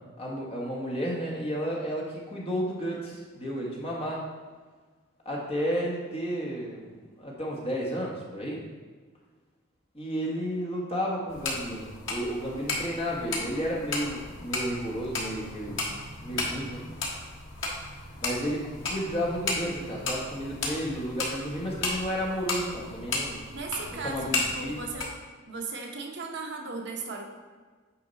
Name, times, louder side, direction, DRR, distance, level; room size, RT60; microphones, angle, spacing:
voice 1, 0.2-4.3 5.2-6.9 7.2-8.6 9.9-15.8 16.2-16.8 18.2-23.4 23.9-24.8, equal, 30° left, -3 dB, 1.5 m, -32 dB
sound 1, 11.3-25.1, left 2 dB, 75° left, 1.5 m, -34 dB
voice 2, 23.5-25.1 25.5-27.3, right 4 dB, 55° right, 1 dB, 1.0 m, -36 dB
8.8 x 4.9 x 4.1 m, 1.4 s
head